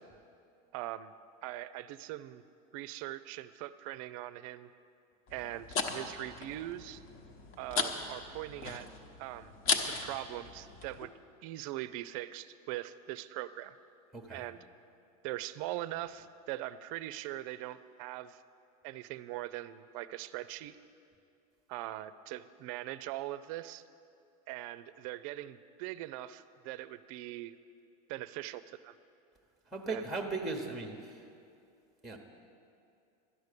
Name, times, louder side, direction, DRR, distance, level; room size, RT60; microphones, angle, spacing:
voice 1, 0.7-1.1 1.4-2.4 2.7-4.7 5.3-7.0 7.6-8.9 9.2-9.5 9.8-11.1 11.4-13.7 14.3-14.6 15.2-18.4 18.8-20.8 21.7-23.8 24.5-27.5 28.1-28.9 29.9-30.1, right 15 dB, 60° right, 15 dB, 0.5 m, -41 dB
sound 1, 5.3-11.1, left 5 dB, 45° left, 1.0 m, -37 dB
voice 2, 14.1-14.4 29.7-31.2 32.0-32.2, right 3 dB, ahead, 3 dB, 0.9 m, -37 dB
12.5 x 9.7 x 6.6 m, 2.5 s
supercardioid pair, 150°, 20 cm